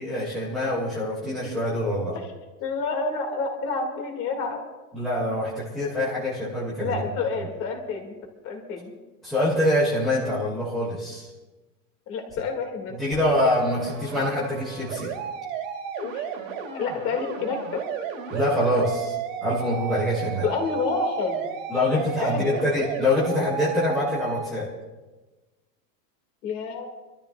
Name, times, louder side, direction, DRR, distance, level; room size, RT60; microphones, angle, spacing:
voice 1, 0.0-2.2 4.9-7.0 9.2-11.3 13.0-15.1 18.3-19.1 19.4-20.4 21.7-24.7, left 1 dB, ahead, -13 dB, 0.4 m, -25 dB
voice 2, 2.6-4.6 6.8-8.1 8.4-8.9 12.1-12.9 16.0-16.3 16.7-17.8 20.4-21.4 22.2-22.6 26.4-26.9, left 4 dB, 25° left, 3 dB, 1.9 m, -28 dB
sound 1, 13.1-24.5, right 7 dB, 50° right, 2.4 m, -34 dB
29.0 x 13.0 x 2.3 m, 1.2 s
supercardioid pair, 175°, 48 cm